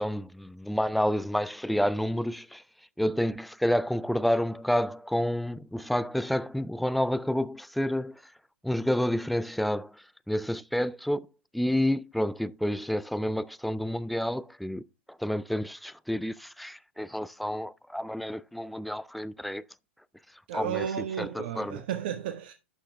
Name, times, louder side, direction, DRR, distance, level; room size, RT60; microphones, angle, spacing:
voice 1, 0.0-2.6 3.0-8.1 8.6-9.9 10.3-11.3 11.5-14.8 15.2-19.6 20.5-21.8, equal, ahead, 0.4 m, -29 dB
voice 2, 20.5-22.5, right 9 dB, 55° right, 1.0 m, -33 dB
11.5 x 6.4 x 3.3 m
figure-of-eight pair, 105°, 7 cm